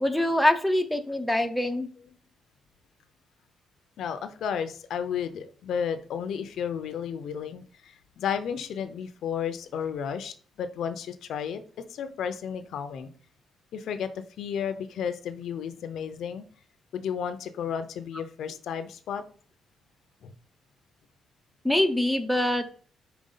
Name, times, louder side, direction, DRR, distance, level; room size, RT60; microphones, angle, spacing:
voice 1, 0.0-1.9 21.6-22.7, left 1 dB, ahead, 8 dB, 0.6 m, -24 dB
voice 2, 4.0-11.6 11.9-13.1 13.7-16.4 16.9-19.2 20.2-20.3, left 7 dB, 65° left, 10 dB, 0.6 m, -33 dB
5.1 x 4.6 x 5.5 m, 0.43 s
cardioid pair, 165°, 0 cm